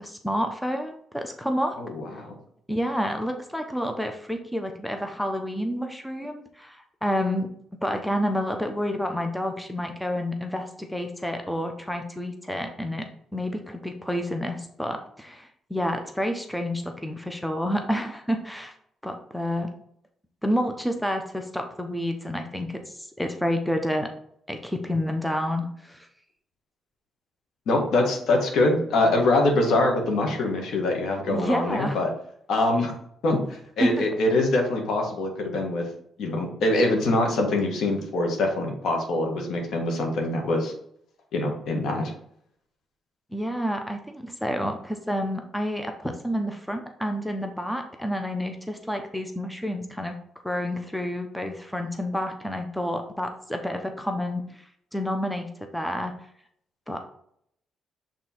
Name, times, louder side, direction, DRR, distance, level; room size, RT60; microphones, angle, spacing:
voice 1, 0.0-1.8 2.7-7.5 7.8-18.7 19.0-19.7 20.4-24.1 24.5-26.1 31.3-32.0 33.8-33.9 43.3-50.2 50.4-56.1 56.9-57.0, equal, 5° left, 5 dB, 0.7 m, -29 dB
voice 2, 1.8-2.3 27.7-32.1 32.5-32.9 33.2-35.8 36.2-40.7 41.3-42.1, left 2 dB, 75° left, 2 dB, 1.6 m, -24 dB
6.0 x 3.6 x 4.4 m, 0.69 s
cardioid pair, 90°, 0 cm